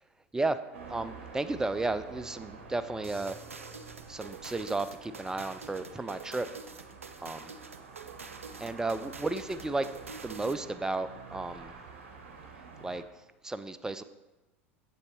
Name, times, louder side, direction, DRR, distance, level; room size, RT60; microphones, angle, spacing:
sound 1, 0.7-13.0, right 5 dB, 70° right, 1.0 m, -49 dB
voice 1, 0.9-3.4 4.1-6.5 7.2-7.5 8.6-9.9 10.2-11.7 12.8-13.0 13.4-14.0, right 2 dB, 10° right, 13 dB, 0.3 m, -33 dB
sound 2, 3.0-10.7, right 4 dB, 90° right, 0.4 m, -46 dB
7.7 x 7.0 x 3.1 m, 1.1 s
figure-of-eight pair, 80°, 7 cm